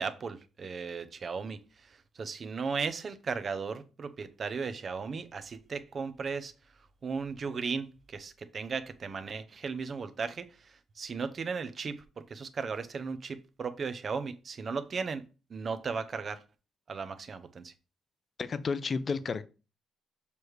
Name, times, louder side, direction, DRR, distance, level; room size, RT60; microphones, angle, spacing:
voice 1, 0.0-6.5 7.0-15.2 15.5-16.4 16.9-17.7, right 5 dB, 45° right, 0.8 m, -36 dB
voice 2, 18.4-19.4, left 5 dB, 40° left, 0.6 m, -31 dB
6.9 x 3.2 x 4.7 m
cardioid pair, 90°, 0 cm